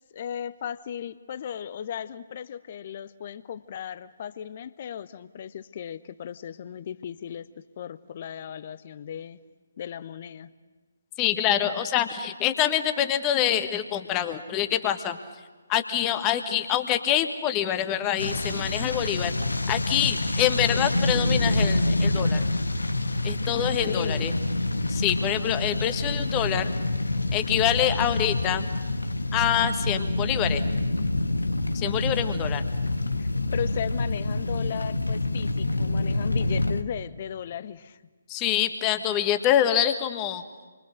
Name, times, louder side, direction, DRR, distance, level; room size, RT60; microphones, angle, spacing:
voice 1, 0.1-9.4 9.8-10.5 23.9-24.3 31.8-31.9 33.2-38.0, left 9 dB, 35° left, 16 dB, 0.9 m, -36 dB
voice 2, 11.2-15.2 15.7-19.3 19.7-22.4 23.2-24.3 24.9-26.7 27.3-28.6 29.3-30.6 31.7-32.6 38.3-40.4, left 11 dB, 20° left, 9 dB, 1.4 m, -25 dB
sound 1, 18.2-36.8, left 2 dB, 75° left, 1.4 m, -27 dB
28.5 x 24.5 x 6.5 m, 1.4 s
figure-of-eight pair, 140°, 0 cm